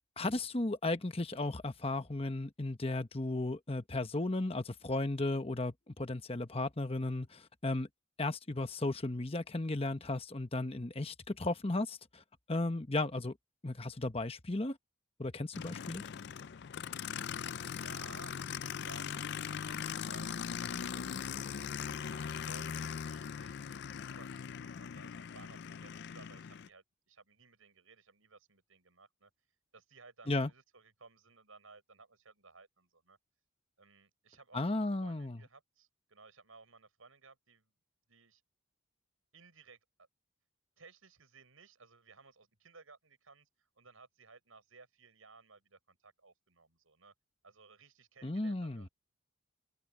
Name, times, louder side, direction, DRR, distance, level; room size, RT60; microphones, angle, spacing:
voice 1, 0.2-7.9 8.2-12.2 12.5-13.3 13.6-14.8 15.2-16.0 30.3-30.5 34.5-35.4 48.2-48.8, left 2 dB, 30° left, 1.1 m, -35 dB
Aircraft, 15.5-26.7, left 7 dB, 55° left, 0.4 m, -40 dB
voice 2, 15.9-16.6 17.6-21.4 22.1-29.3 29.7-33.2 33.8-37.7 38.1-38.4 39.3-40.1 40.8-47.1 47.4-48.9, right 4 dB, 85° right, 5.9 m, -59 dB
head